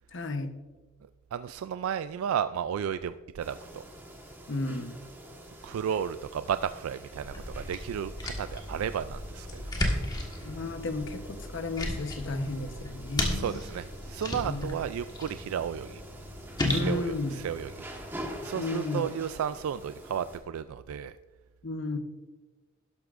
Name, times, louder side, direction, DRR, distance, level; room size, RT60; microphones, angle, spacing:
voice 1, 0.1-0.6 4.5-5.0 10.4-13.6 14.5-14.8 16.7-17.3 18.5-19.0 21.6-22.0, left 2 dB, 60° left, 7 dB, 1.0 m, -33 dB
voice 2, 1.3-3.8 5.6-9.9 13.3-16.0 16.7-17.7 18.4-21.2, right 8 dB, 85° right, 12 dB, 0.3 m, -33 dB
sound 1, 3.4-20.4, right 1 dB, 10° right, 1.4 m, -46 dB
sound 2, 7.2-18.4, left 1 dB, 20° left, 1.5 m, -35 dB
12.5 x 12.0 x 2.5 m, 1.3 s
head